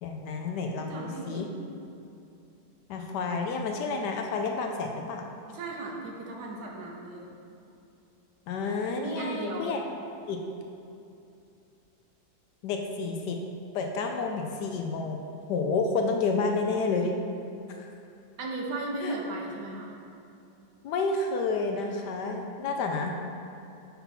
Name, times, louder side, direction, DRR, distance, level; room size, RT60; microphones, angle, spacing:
voice 1, 0.0-1.5 2.9-5.3 8.5-9.8 10.3-10.4 12.6-13.4 13.7-15.2 15.5-17.1 19.0-19.1 20.8-23.2, left 4 dB, 75° left, 3 dB, 1.1 m, -30 dB
voice 2, 0.8-1.4 5.5-7.3 9.0-9.8 18.4-19.9, right 2 dB, 65° right, -1 dB, 1.3 m, -36 dB
5.7 x 3.8 x 5.7 m, 2.7 s
omnidirectional pair, 2.0 m